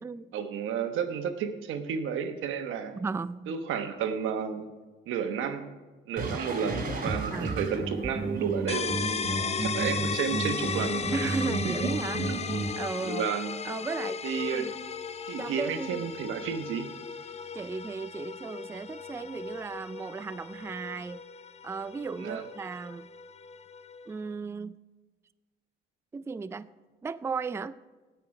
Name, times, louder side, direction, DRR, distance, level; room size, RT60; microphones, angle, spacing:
voice 1, 0.3-3.0 3.5-4.7 5.1-5.6 6.1-9.3 9.6-11.1 11.6-11.8 12.1-12.4 13.0-13.5 14.2-14.7 15.3-16.9 22.2-22.4, right 7 dB, 85° right, 7 dB, 1.1 m, -32 dB
voice 2, 3.0-3.5 7.3-7.6 11.1-12.2 12.8-13.3 13.6-14.2 14.5-14.7 15.4-16.1 17.5-21.2 21.6-23.1 24.1-24.8 26.1-26.7 27.0-27.8, right 4 dB, 15° right, 14 dB, 0.3 m, -35 dB
sound 1, 6.2-12.7, right 2 dB, 45° right, 3.4 m, -33 dB
sound 2, 8.7-24.2, left 6 dB, 35° left, 0.5 m, -36 dB
17.0 x 5.8 x 4.8 m, 1.3 s
cardioid pair, 90°, 20 cm